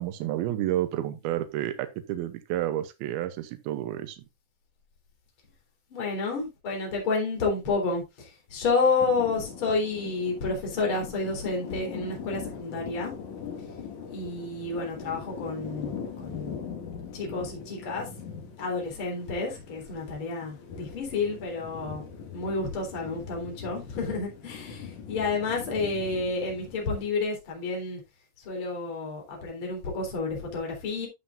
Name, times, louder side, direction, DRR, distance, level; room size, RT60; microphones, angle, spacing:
voice 1, 0.0-4.2, right 13 dB, 85° right, 2.1 m, -30 dB
voice 2, 5.9-13.1 14.1-16.6 17.1-18.1 18.6-28.0 28.4-31.1, left 3 dB, 30° left, 4.0 m, -30 dB
sound 1, 9.0-27.1, left 6 dB, 55° left, 2.6 m, -41 dB
12.0 x 7.2 x 2.6 m
omnidirectional pair, 5.5 m